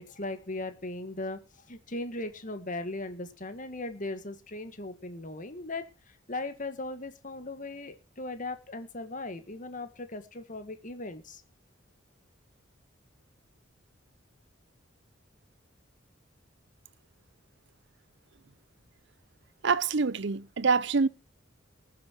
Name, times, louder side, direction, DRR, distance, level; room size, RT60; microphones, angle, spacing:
voice 1, 0.0-5.8 6.3-11.4, left 2 dB, 40° left, 1.8 m, -38 dB
voice 2, 19.6-21.1, right 4 dB, 60° right, 0.6 m, -25 dB
20.0 x 7.7 x 4.6 m
head